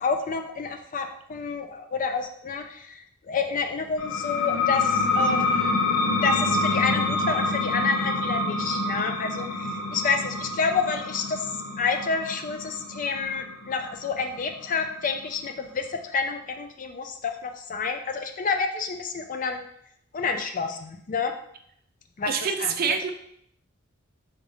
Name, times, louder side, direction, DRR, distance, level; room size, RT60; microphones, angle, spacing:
voice 1, 0.0-5.7 6.2-11.4 11.8-19.6 20.1-21.3 22.2-22.3 22.6-22.8, left 5 dB, 40° left, 6 dB, 0.4 m, -29 dB
sound 1, 4.0-15.3, left 3 dB, 80° left, 0.8 m, -27 dB
voice 2, 22.3-23.1, right 6 dB, 45° right, 7 dB, 0.4 m, -26 dB
3.9 x 3.5 x 3.5 m, 0.69 s
head